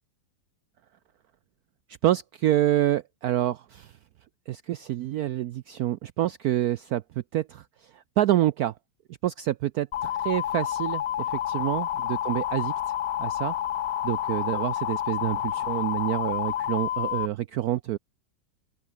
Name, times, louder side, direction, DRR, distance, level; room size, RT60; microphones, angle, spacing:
voice 1, 2.0-3.9 4.5-7.0 7.3-8.7 9.2-12.7 13.2-13.5 14.0-18.0, right 13 dB, 90° right, 0.8 m, -27 dB
sound 1, 9.9-17.3, left 11 dB, 65° left, 1.5 m, -29 dB
open air
omnidirectional pair, 2.2 m